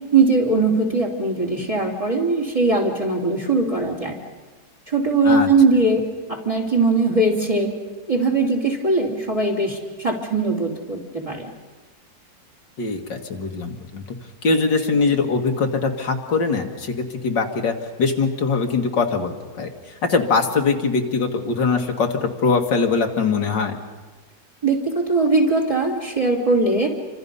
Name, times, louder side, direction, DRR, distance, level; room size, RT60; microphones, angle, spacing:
voice 1, 0.1-4.1 4.9-6.0 6.3-7.8 8.1-11.5 24.6-26.9, right 3 dB, 15° right, 1 dB, 3.1 m, -20 dB
voice 2, 12.8-14.0 14.4-19.7 20.1-23.7, left 4 dB, 75° left, 3 dB, 2.3 m, -22 dB
28.5 x 25.5 x 5.5 m, 1.3 s
omnidirectional pair, 2.0 m